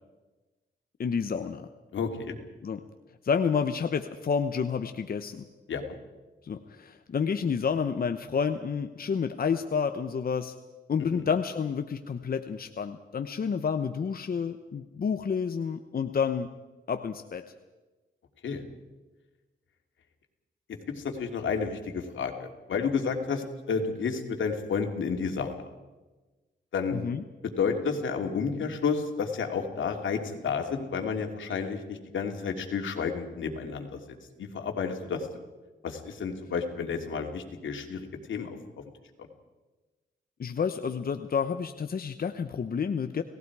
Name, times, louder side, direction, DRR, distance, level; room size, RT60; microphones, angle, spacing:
voice 1, 1.0-1.7 2.6-2.8 3.2-5.4 6.4-10.5 10.9-16.5 16.9-17.5 26.9-27.2 40.4-43.2, left 6 dB, 50° left, 8 dB, 1.0 m, -29 dB
voice 2, 1.9-2.4 5.7-6.0 11.1-11.2 18.4-18.6 21.0-25.7 26.7-27.0 27.6-34.0 34.4-35.3 35.8-38.6, left 5 dB, 80° left, 3 dB, 2.8 m, -31 dB
30.0 x 18.5 x 4.9 m, 1.2 s
cardioid pair, 85°, 20 cm